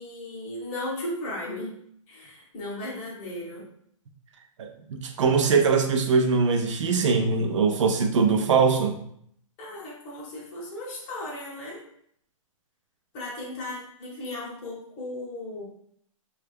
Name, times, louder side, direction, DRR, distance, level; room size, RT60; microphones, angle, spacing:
voice 1, 0.0-1.7 2.1-3.6 9.6-11.8 13.1-15.6, left 1 dB, 25° left, -6 dB, 0.8 m, -36 dB
voice 2, 4.6-9.0, right 5 dB, 60° right, 5 dB, 0.4 m, -22 dB
3.0 x 2.4 x 3.3 m, 0.67 s
hypercardioid pair, 165°, 18 cm